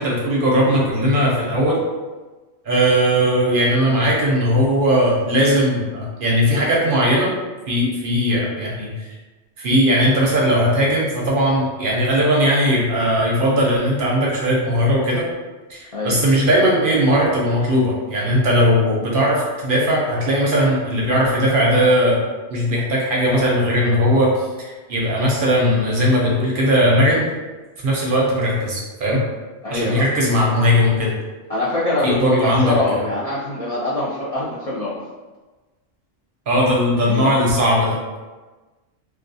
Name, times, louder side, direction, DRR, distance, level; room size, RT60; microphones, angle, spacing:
voice 1, 0.0-1.8 2.7-7.3 7.7-9.1 9.6-15.3 15.7-22.2 22.5-27.3 27.8-29.2 29.7-31.1 32.0-33.0 36.5-38.2, equal, 60° right, -3 dB, 0.7 m, -18 dB
voice 2, 15.9-16.3 29.6-30.0 31.5-35.0 37.1-37.3, left 2 dB, 60° left, -8 dB, 0.4 m, -24 dB
2.3 x 2.3 x 2.6 m, 1.2 s
omnidirectional pair, 1.2 m